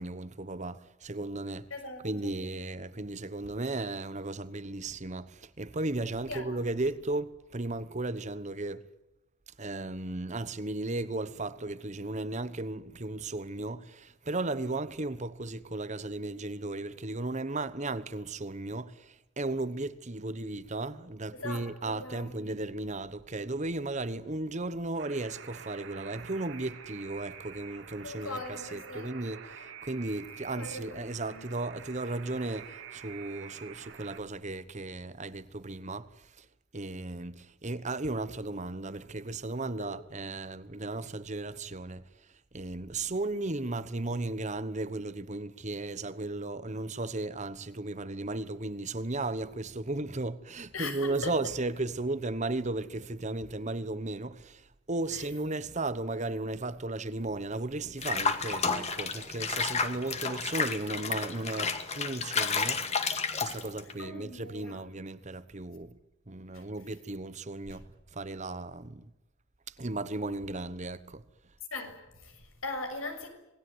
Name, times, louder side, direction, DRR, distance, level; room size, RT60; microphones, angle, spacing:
voice 1, 0.0-1.7 2.0-8.8 9.6-36.5 36.7-42.0 42.5-62.8 63.4-65.9 66.3-69.1 69.8-71.2, right 2 dB, 35° right, 1.1 m, -35 dB
voice 2, 1.7-2.4 6.3-6.5 14.5-14.8 21.3-22.3 28.0-29.1 30.5-31.5 39.8-39.9 50.7-51.3 55.1-55.3 64.0-64.8 66.5-66.6 67.7-67.8 71.7-73.3, left 3 dB, 80° left, 6.8 m, -40 dB
Alarm, 25.0-34.2, right 7 dB, 60° right, 2.4 m, -47 dB
Water / Bathtub (filling or washing), 58.0-63.9, left 5 dB, 30° left, 2.2 m, -31 dB
27.0 x 20.5 x 9.5 m
head